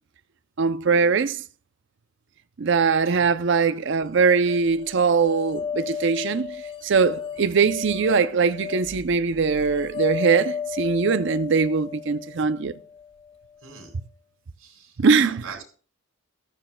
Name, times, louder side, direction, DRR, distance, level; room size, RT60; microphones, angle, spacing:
voice 1, 0.6-1.4 2.6-6.6 6.8-12.7 15.0-15.4, right 5 dB, 55° right, 0.5 m, -21 dB
sound 1, 4.1-13.3, left 6 dB, 25° left, 0.7 m, -34 dB
voice 2, 14.6-15.6, right 5 dB, 75° right, 3.6 m, -43 dB
14.5 x 13.0 x 2.2 m
head